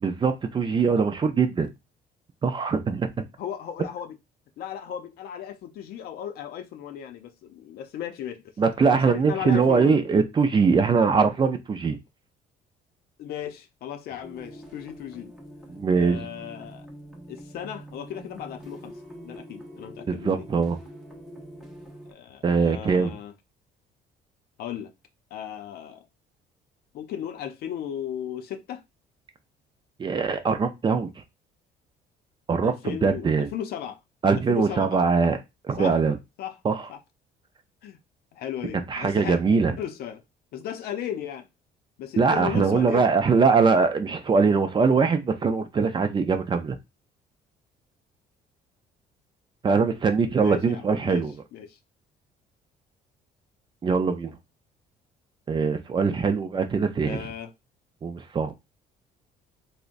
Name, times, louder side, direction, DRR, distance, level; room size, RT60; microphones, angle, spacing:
voice 1, 0.0-1.7 2.4-3.2 8.6-12.0 15.7-16.3 20.1-20.8 22.4-23.2 30.0-31.1 32.5-33.5 34.2-35.4 35.6-36.2 36.6-36.9 38.9-39.8 42.2-46.8 49.6-51.3 53.8-54.4 55.5-57.3 58.0-58.5, right 5 dB, 30° right, 0.5 m, -22 dB
voice 2, 3.4-4.1 4.6-8.4 9.0-10.0 13.2-15.3 16.0-16.9 17.3-18.9 19.2-20.5 22.1-23.3 24.6-24.9 25.3-26.0 26.9-28.8 32.6-34.0 34.5-35.0 35.8-36.0 36.4-36.6 36.9-37.0 37.8-38.0 38.3-39.4 39.8-40.2 40.5-41.5 42.0-43.0 50.4-51.8 57.0-57.5, left 9 dB, 65° left, 0.5 m, -36 dB
sound 1, 14.2-22.1, equal, ahead, 0.8 m, -44 dB
3.6 x 2.1 x 2.5 m
cardioid pair, 110°, 17 cm